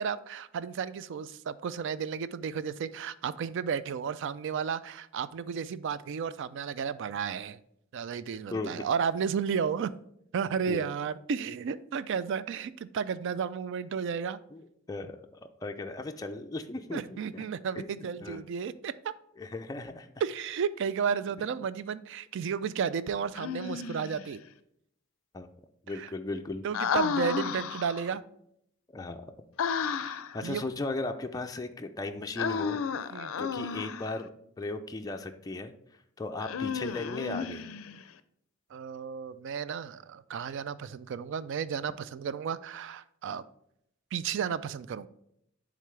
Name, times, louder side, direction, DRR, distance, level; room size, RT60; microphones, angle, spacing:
voice 1, 0.0-7.6 7.9-9.9 10.3-14.4 16.9-19.1 20.2-24.4 25.9-26.1 26.6-28.2 30.0-30.1 30.4-30.6 33.1-33.3 38.7-43.4 44.1-45.1, right 6 dB, 65° right, 15 dB, 0.3 m, -33 dB
voice 2, 8.5-8.9 10.7-10.9 14.5-15.1 15.6-17.4 17.7-18.4 19.4-20.1 25.3-25.5 25.8-26.7 28.9-29.2 29.9-32.8 33.4-34.3 34.6-35.7 36.2-37.6, left 2 dB, 20° left, 5 dB, 0.3 m, -37 dB
Human voice, 23.4-24.2 26.7-28.1 29.6-30.4 32.4-34.2 36.4-38.0, left 6 dB, 85° left, 0.4 m, -32 dB
10.0 x 3.8 x 3.2 m, 0.74 s
head